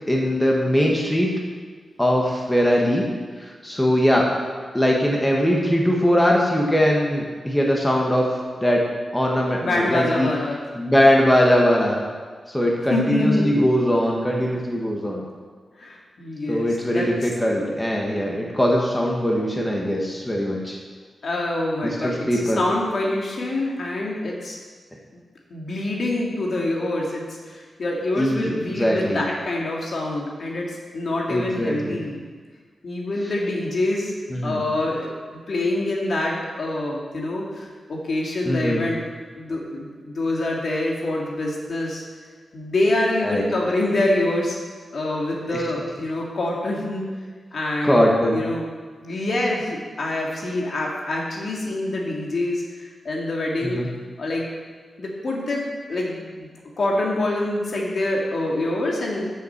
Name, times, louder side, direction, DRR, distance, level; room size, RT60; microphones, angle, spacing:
voice 1, 0.1-1.3 2.0-3.0 3.4-4.3 4.7-8.3 8.6-8.8 9.1-10.3 10.7-11.9 12.5-15.2 16.5-20.8 21.8-22.6 28.1-29.2 31.3-32.0 34.3-34.6 38.4-38.8 43.2-43.4 45.5-45.6 47.8-48.4 53.6-53.9, equal, 10° left, -2 dB, 1.6 m, -21 dB
voice 2, 9.6-10.6 12.9-13.5 15.8-17.3 21.2-24.6 25.5-32.2 32.8-34.1 34.4-39.0 39.4-42.0 42.5-44.6 44.9-47.0 47.5-48.7 49.0-53.8 54.2-54.5 55.0-55.6 55.9-56.5 56.8-59.3, left 1 dB, 60° left, -2 dB, 2.3 m, -25 dB
13.0 x 6.8 x 4.6 m, 1.5 s
wide cardioid pair, 95°, 0 cm